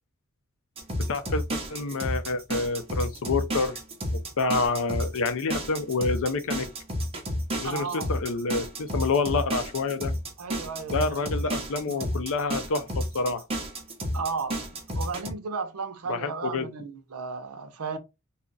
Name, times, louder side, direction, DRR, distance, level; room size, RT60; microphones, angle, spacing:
sound 1, 0.8-15.3, equal, 25° right, 0.8 m, -31 dB
voice 1, 1.1-3.8 4.4-6.7 7.6-10.1 10.9-13.5 16.1-16.6, left 3 dB, 65° left, 0.6 m, -28 dB
voice 2, 7.6-8.1 10.4-12.1 14.1-18.0, right 5 dB, 80° right, 0.7 m, -35 dB
2.9 x 2.4 x 3.8 m
head